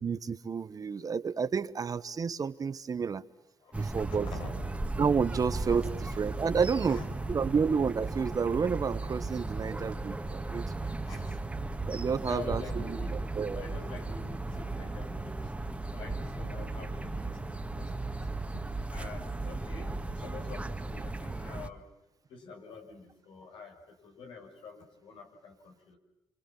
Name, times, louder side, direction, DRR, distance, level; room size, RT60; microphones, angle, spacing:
voice 1, 0.0-3.2 3.7-4.3 5.0-7.0 7.3-10.6 11.9-13.0 13.4-13.7, right 6 dB, 45° right, 14 dB, 1.1 m, -30 dB
voice 2, 3.6-4.6 5.6-5.9 6.5-7.3 10.8-11.7 12.1-18.1 18.5-18.6 18.9-21.9 22.3-26.0, left 3 dB, 85° left, 3 dB, 6.1 m, -46 dB
sound 1, 3.7-21.7, right 2 dB, 15° right, 1.8 m, -36 dB
27.0 x 27.0 x 7.3 m, 0.89 s
cardioid pair, 80°, 9 cm